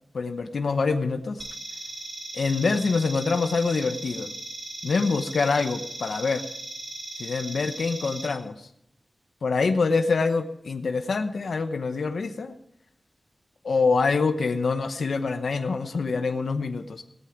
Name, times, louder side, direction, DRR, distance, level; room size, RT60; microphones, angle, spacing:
voice 1, 0.1-1.4 2.3-4.3 4.8-6.5 7.2-8.7 9.4-12.5 13.6-17.0, left 4 dB, 80° left, 8 dB, 0.9 m, -25 dB
sound 1, 1.4-8.3, right 1 dB, 40° right, 6.2 m, -38 dB
17.5 x 8.7 x 5.8 m, 0.75 s
wide cardioid pair, 75°, 0 cm